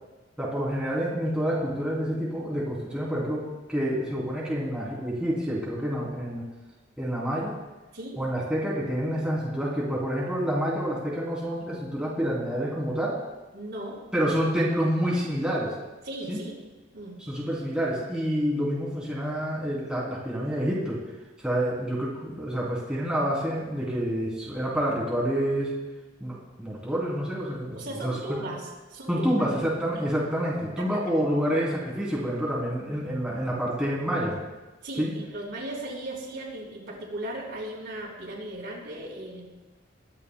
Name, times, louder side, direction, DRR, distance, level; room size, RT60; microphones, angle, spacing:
voice 1, 0.4-6.4 7.0-7.5 8.2-13.2 14.1-15.7 16.3-16.4 17.2-21.0 21.4-25.7 26.2-28.4 29.1-34.4 35.0-35.1, equal, 5° right, -6 dB, 2.9 m, -28 dB
voice 2, 13.5-14.0 16.1-16.5 16.9-17.2 27.7-28.6 28.9-29.5 30.0-30.1 30.8-31.1 34.8-39.4, right 1 dB, 65° right, -3 dB, 4.4 m, -37 dB
22.5 x 11.0 x 2.2 m, 1.2 s
head